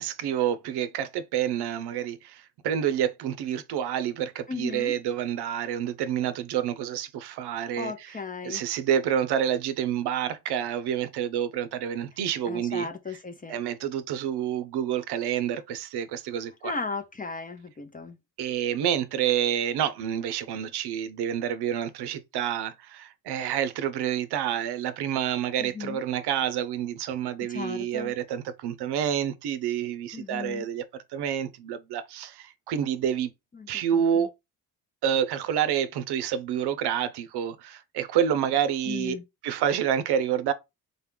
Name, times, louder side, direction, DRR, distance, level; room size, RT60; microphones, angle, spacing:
voice 1, 0.0-12.9 13.5-16.8 18.4-30.8 31.1-33.3 33.7-34.3 35.0-39.2 39.4-40.5, right 9 dB, 75° right, 0.7 m, -28 dB
voice 2, 4.5-5.0 7.8-8.6 12.5-13.6 16.6-18.2 25.6-26.0 27.5-28.1 30.1-30.6 33.6-33.7 33.9-34.3 38.9-39.2, left 4 dB, 20° left, 0.4 m, -36 dB
3.8 x 2.2 x 3.6 m
cardioid pair, 95°, 40 cm